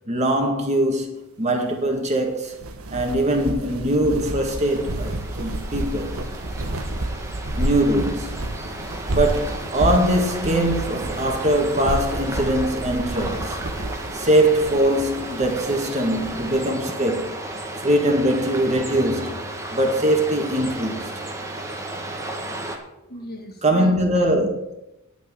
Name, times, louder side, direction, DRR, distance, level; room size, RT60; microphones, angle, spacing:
voice 1, 0.1-2.6 2.9-6.2 7.6-8.4 9.1-13.6 14.1-17.4 17.8-19.3 19.7-21.1 23.6-24.7, right 1 dB, 30° right, 1.8 m, -22 dB
sound 1, 2.5-16.6, right 1 dB, 75° right, 1.4 m, -30 dB
sound 2, 4.3-22.8, right 2 dB, 15° right, 1.5 m, -34 dB
voice 2, 23.0-24.0, equal, 45° left, 1.8 m, -41 dB
10.5 x 6.2 x 8.7 m
head